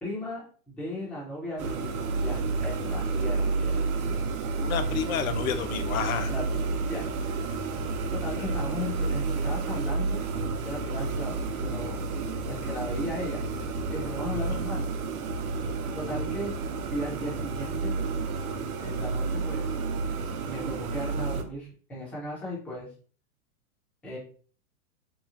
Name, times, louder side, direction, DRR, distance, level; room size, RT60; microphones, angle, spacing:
voice 1, 0.0-3.9 6.3-6.4 6.9-7.5 8.2-10.2 10.6-12.1 12.5-13.6 13.9-14.9 15.9-16.5 16.9-17.9 18.8-19.7 20.4-22.9 24.0-24.2, left 1 dB, 5° left, -5 dB, 0.3 m, -36 dB
sound 1, 1.6-21.4, right 4 dB, 75° right, 0.6 m, -30 dB
voice 2, 4.6-6.3 14.3-14.6, left 8 dB, 70° left, 8 dB, 0.6 m, -30 dB
3.0 x 2.3 x 2.4 m, 0.42 s
hypercardioid pair, 120°, 44 cm